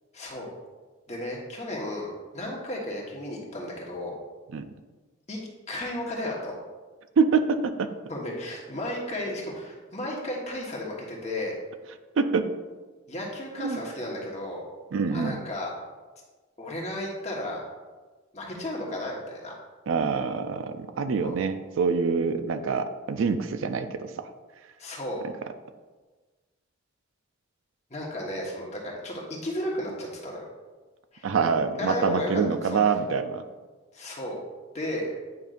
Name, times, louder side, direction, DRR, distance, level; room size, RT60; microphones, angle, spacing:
voice 1, 0.1-0.5 1.1-4.2 5.3-5.4 5.7-6.5 8.1-11.6 13.1-14.6 15.1-15.7 16.6-17.6 18.3-19.5 21.2-21.3 24.8-25.2 27.9-30.5 31.1-31.3 31.8-32.8 33.9-34.4 34.7-35.1, left 1 dB, 35° left, -2 dB, 1.3 m, -33 dB
voice 2, 7.2-7.9 12.2-12.5 13.6-13.8 14.9-15.4 19.9-24.3 31.2-33.4, right 5 dB, 70° right, 9 dB, 0.4 m, -25 dB
9.4 x 5.3 x 2.5 m, 1.3 s
head